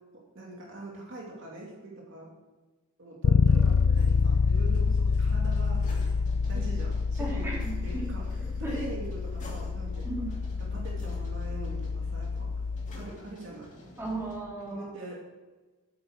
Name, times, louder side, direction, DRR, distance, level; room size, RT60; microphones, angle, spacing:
voice 1, 0.3-2.3 3.0-5.8 6.5-7.5 7.8-8.2 8.6-10.1 10.6-12.5 13.0-13.8 14.7-15.2, right 2 dB, 60° right, -3 dB, 2.6 m, -42 dB
Bass guitar, 3.2-13.1, left 5 dB, 60° left, 0.4 m, -27 dB
sound 1, 3.5-14.4, left 1 dB, 35° left, 2.6 m, -49 dB
voice 2, 7.2-8.0 8.6-8.8 10.0-10.3 14.0-14.9, right 2 dB, 10° right, -6 dB, 3.8 m, -35 dB
9.3 x 8.6 x 6.3 m, 1.2 s
head